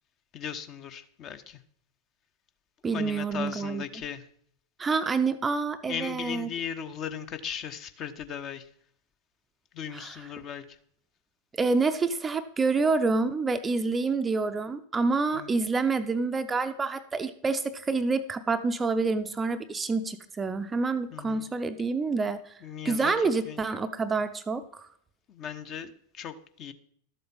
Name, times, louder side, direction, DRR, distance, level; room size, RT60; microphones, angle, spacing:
voice 1, 0.3-1.6 2.9-4.2 5.9-8.7 9.7-10.8 15.3-15.5 21.1-21.5 22.6-23.6 25.3-26.7, left 8 dB, 35° left, 10 dB, 1.0 m, -37 dB
voice 2, 2.8-3.8 4.8-6.5 9.9-10.2 11.6-24.9, right 4 dB, 15° right, 10 dB, 0.6 m, -28 dB
12.5 x 7.8 x 5.5 m, 0.64 s
figure-of-eight pair, 90°, 0 cm